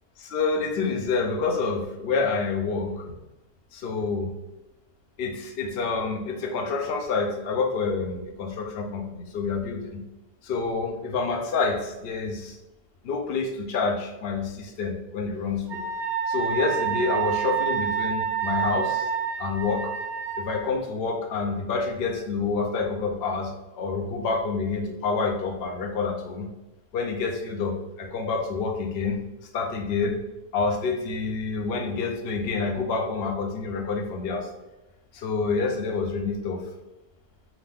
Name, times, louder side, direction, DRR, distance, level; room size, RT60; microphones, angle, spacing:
voice 1, 0.2-3.1 3.7-4.3 5.2-10.0 10.4-12.6 13.0-15.9 16.3-19.1 19.4-19.9 20.4-26.5 26.9-29.2 29.5-30.2 30.5-34.5 35.1-36.6, left 4 dB, 60° left, 3 dB, 0.6 m, -28 dB
Wind instrument woodwind instrument, 15.7-20.6, right 8 dB, 60° right, 0.8 m, -28 dB
5.0 x 2.6 x 3.5 m, 0.99 s
omnidirectional pair, 1.8 m